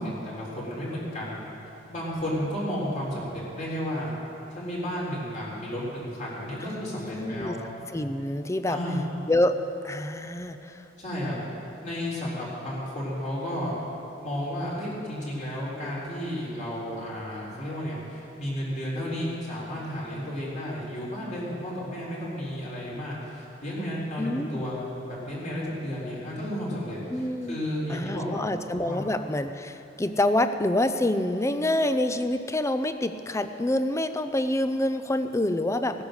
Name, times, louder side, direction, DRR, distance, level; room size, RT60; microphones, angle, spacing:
voice 1, 0.0-1.4 1.9-4.1 4.5-7.6 8.7-9.0 11.0-11.4 11.8-13.7 14.2-28.4 28.8-29.1, equal, 40° left, -6 dB, 4.0 m, -32 dB
voice 2, 6.6-7.6 7.9-8.8 9.3-10.8 24.2-24.6 27.1-27.6 27.9-36.0, left 1 dB, 15° left, 10 dB, 0.6 m, -27 dB
17.0 x 9.9 x 6.6 m, 2.8 s
head